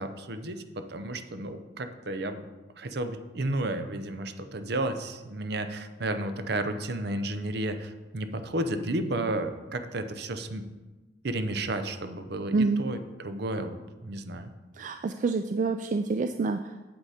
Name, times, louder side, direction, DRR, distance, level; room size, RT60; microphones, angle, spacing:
voice 1, 0.0-2.5 2.8-10.7 11.2-14.5, right 1 dB, 60° right, 9 dB, 0.7 m, -32 dB
voice 2, 12.5-12.8 14.7-16.8, right 3 dB, 45° right, 8 dB, 0.3 m, -27 dB
8.1 x 7.9 x 4.3 m, 1.2 s
head